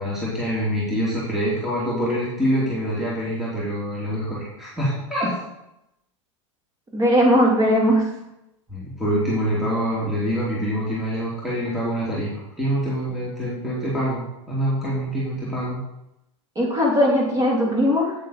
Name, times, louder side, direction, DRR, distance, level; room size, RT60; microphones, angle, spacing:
voice 1, 0.0-5.4 8.7-15.8, equal, ahead, -7 dB, 2.6 m, -25 dB
voice 2, 6.9-8.0 16.6-18.1, equal, 20° right, -2 dB, 3.4 m, -18 dB
8.7 x 7.4 x 4.2 m, 0.87 s
hypercardioid pair, 110°, 16 cm